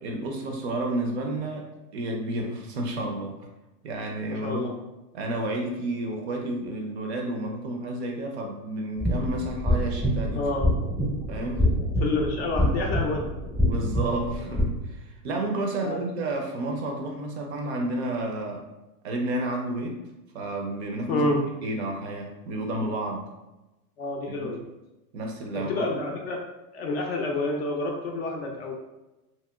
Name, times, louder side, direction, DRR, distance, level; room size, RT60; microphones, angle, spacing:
voice 1, 0.0-1.7 1.9-3.4 3.8-4.7 5.1-10.5 11.3-11.7 13.7-18.7 19.0-20.0 20.3-21.3 21.6-23.3 24.3-24.5 25.1-26.0, right 1 dB, 45° right, 2 dB, 0.4 m, -31 dB
voice 2, 4.4-4.7 10.3-10.7 12.0-13.3 15.8-16.0 21.1-21.4 24.0-24.6 25.5-26.4 26.7-28.7, left 2 dB, 40° left, 1 dB, 0.4 m, -28 dB
sound 1, 9.0-14.6, equal, ahead, 0.7 m, -26 dB
2.9 x 2.8 x 2.2 m, 1.0 s
supercardioid pair, 155°, 48 cm